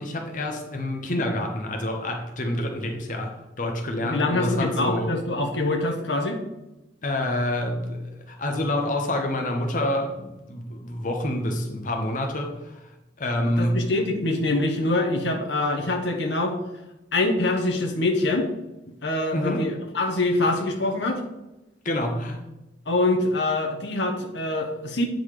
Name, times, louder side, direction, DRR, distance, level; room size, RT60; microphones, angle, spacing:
voice 1, 0.0-3.3 3.6-5.1 7.0-8.0 8.3-12.9 13.2-13.8 19.3-19.6 21.8-22.4, left 1 dB, 50° left, 2 dB, 1.0 m, -27 dB
voice 2, 4.0-6.4 13.4-16.5 17.1-18.5 19.0-21.2 22.9-25.0, left 2 dB, 80° left, 3 dB, 1.1 m, -24 dB
8.7 x 3.9 x 4.9 m, 0.97 s
head